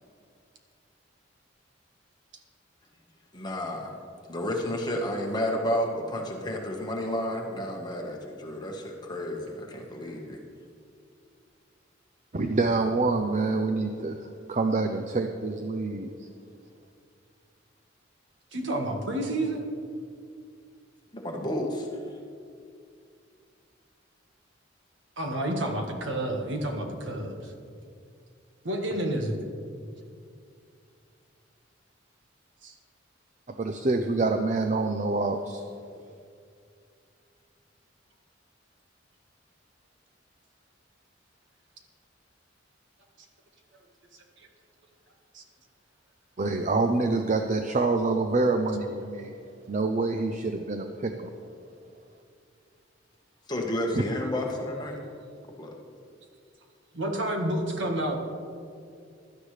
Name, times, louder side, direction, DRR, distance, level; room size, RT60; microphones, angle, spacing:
voice 1, 3.3-3.9 4.3-10.4 21.1-21.9 53.5-55.0 55.6-55.7, left 1 dB, 20° left, 0 dB, 1.4 m, -31 dB
voice 2, 12.3-14.2 14.5-16.3 33.5-35.6 46.4-49.3 49.7-51.3 53.9-54.0, right 3 dB, 40° right, 5 dB, 0.5 m, -26 dB
voice 3, 18.5-19.6 25.2-27.5 28.6-29.4 32.6-32.7 44.4-44.5 56.9-58.2, right 1 dB, 70° right, 2 dB, 1.5 m, -29 dB
16.0 x 12.0 x 3.3 m, 2.4 s
head